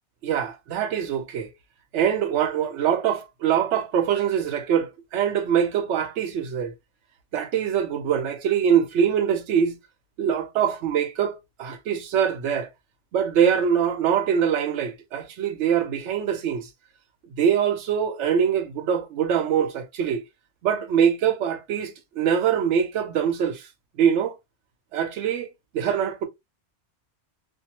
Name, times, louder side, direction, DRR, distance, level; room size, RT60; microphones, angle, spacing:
voice 1, 0.2-1.5 1.9-6.7 7.3-9.8 10.2-12.7 13.1-16.7 17.2-20.2 20.6-23.7 24.0-24.4 24.9-25.5 25.7-26.3, right 8 dB, 80° right, 0.9 m, -23 dB
2.6 x 2.2 x 2.8 m
omnidirectional pair, 1.2 m